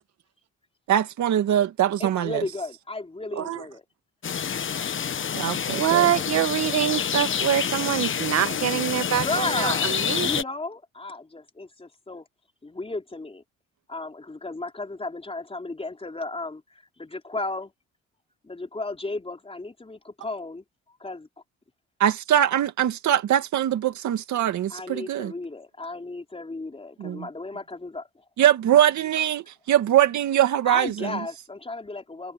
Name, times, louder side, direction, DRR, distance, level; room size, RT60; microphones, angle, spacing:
voice 1, 0.9-2.4 5.3-6.1 22.0-25.3 27.0-27.3 28.4-31.1, right 11 dB, 70° right, 2.1 m, -22 dB
voice 2, 2.0-3.8 9.0-12.3 12.6-13.4 13.9-17.7 18.4-20.6 21.0-21.3 24.7-28.1 30.7-32.3, left 2 dB, 20° left, 3.9 m, -34 dB
sound 1, 4.2-10.4, left 7 dB, 40° left, 1.1 m, -27 dB
voice 3, 5.8-9.2 9.6-9.7 10.1-10.3, right 11 dB, 55° right, 1.0 m, -24 dB
cardioid pair, 90°, 30 cm